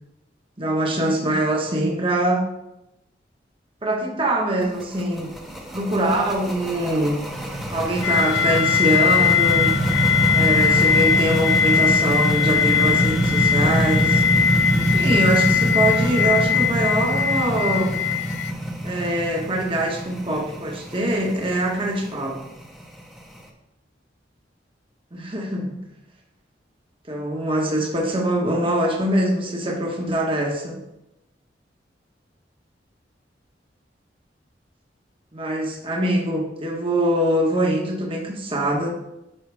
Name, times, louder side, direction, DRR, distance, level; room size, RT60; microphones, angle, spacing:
voice 1, 0.6-2.4 3.8-5.3 5.7-7.2 7.7-9.7 10.3-14.2 14.8-18.0 18.8-22.4 25.1-25.7 27.1-30.8 35.3-38.9, right 1 dB, 30° right, -1 dB, 1.4 m, -23 dB
sound 1, 4.6-23.4, right 1 dB, ahead, 0.9 m, -25 dB
sound 2, 8.0-18.5, left 8 dB, 80° left, 0.4 m, -21 dB
8.8 x 5.6 x 3.6 m, 0.90 s
head